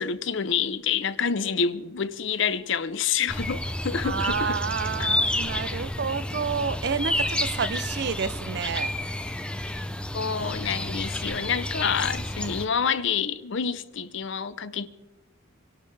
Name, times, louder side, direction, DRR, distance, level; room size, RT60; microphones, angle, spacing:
voice 1, 0.0-4.6 5.0-5.1 10.1-14.9, left 6 dB, 60° left, 0.6 m, -28 dB
sound 1, 3.3-12.6, left 1 dB, 5° left, 0.5 m, -30 dB
voice 2, 4.0-8.9, right 6 dB, 50° right, 0.5 m, -29 dB
25.5 x 12.0 x 3.3 m
head